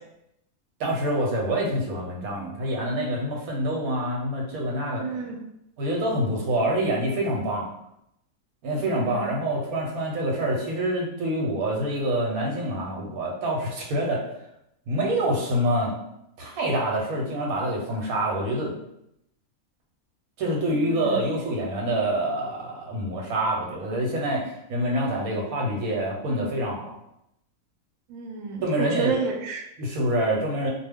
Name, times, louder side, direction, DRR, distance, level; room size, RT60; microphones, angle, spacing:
voice 1, 0.8-5.0 5.8-7.7 8.6-14.2 14.9-15.9 16.4-18.7 20.4-26.9 28.6-29.2 29.8-30.7, right 1 dB, 90° right, -1 dB, 1.2 m, -26 dB
voice 2, 5.0-5.4 8.8-9.2 20.7-21.2 28.1-29.6, right 4 dB, 70° right, 0 dB, 0.9 m, -31 dB
2.3 x 2.2 x 3.4 m, 0.80 s
omnidirectional pair, 1.5 m